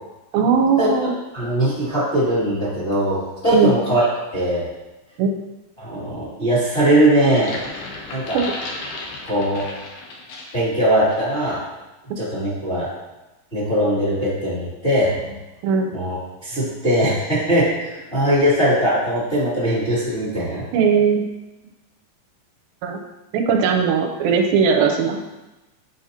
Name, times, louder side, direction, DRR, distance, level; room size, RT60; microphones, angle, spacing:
voice 1, 0.3-1.1 3.5-3.7 5.2-5.3 8.3-8.4 15.6-15.9 20.7-21.3 22.8-23.0 23.3-25.2, right 6 dB, 90° right, 3 dB, 2.4 m, -18 dB
voice 2, 1.3-3.2 3.4-4.1 4.3-4.7 5.8-7.5 8.1-8.4 9.2-9.6 10.5-11.6 12.2-12.9 13.5-15.4 15.9-16.1 16.4-20.6, right 1 dB, 20° left, -10 dB, 2.0 m, -20 dB
sound 1, 7.3-10.7 11.1-11.3, left 2 dB, 90° left, 1.4 m, -34 dB
8.3 x 4.9 x 2.9 m, 1.0 s
omnidirectional pair, 4.2 m